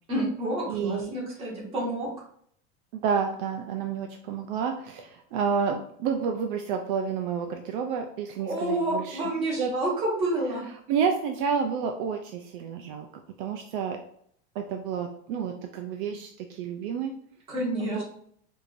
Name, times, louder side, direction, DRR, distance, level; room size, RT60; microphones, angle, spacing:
voice 1, 0.1-2.1 8.4-10.6 17.5-18.0, right 1 dB, 20° right, -5 dB, 1.4 m, -29 dB
voice 2, 0.7-1.1 2.9-9.7 10.9-13.1 13.4-14.0 14.6-17.1 17.8-18.0, right 6 dB, 65° right, 4 dB, 0.5 m, -30 dB
4.6 x 2.7 x 2.5 m, 0.65 s
cardioid pair, 170°, 30 cm